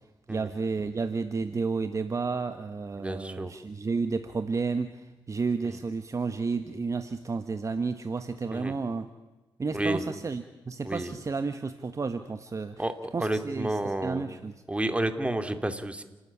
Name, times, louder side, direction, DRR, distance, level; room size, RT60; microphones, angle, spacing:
voice 1, 0.3-9.1 9.6-12.8 13.1-14.5, right 4 dB, 35° right, 9 dB, 1.3 m, -31 dB
voice 2, 3.0-3.5 5.6-5.8 8.5-8.7 9.7-10.0 10.8-11.1 12.8-14.3 14.7-16.0, right 1 dB, 15° right, 9 dB, 2.6 m, -30 dB
29.5 x 13.0 x 9.9 m, 1.2 s
cardioid pair, 75°, 9 cm